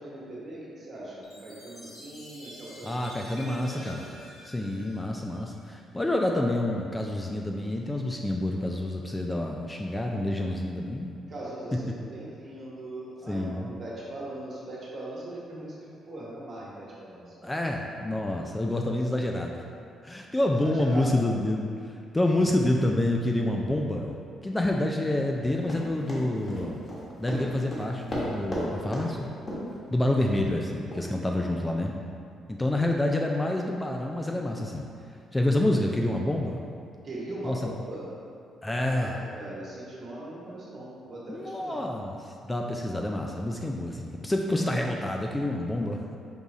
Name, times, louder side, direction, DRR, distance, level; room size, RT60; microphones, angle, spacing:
voice 1, 0.0-2.9 3.3-4.1 11.3-15.7 16.1-17.5 20.6-21.1 31.1-31.4 37.0-38.1 38.8-41.8, right 1 dB, 50° right, -6 dB, 1.3 m, -40 dB
Chime, 1.2-5.8, left 1 dB, 65° left, 1.2 m, -48 dB
voice 2, 2.8-4.1 4.4-11.2 11.7-11.8 13.3-13.7 17.4-19.6 20.0-21.7 22.1-24.2 24.4-26.8 27.2-29.3 29.9-31.9 32.5-34.9 35.3-36.6 37.4-37.7 38.6-39.2 41.3-46.2, left 1 dB, 15° left, 1 dB, 0.3 m, -28 dB
Run, 25.7-28.7 28.9-29.1 29.5-29.7 30.2-30.3 30.9-31.0, equal, 35° left, 1.3 m, -34 dB
5.3 x 2.4 x 4.1 m, 2.4 s
cardioid pair, 90°, 0 cm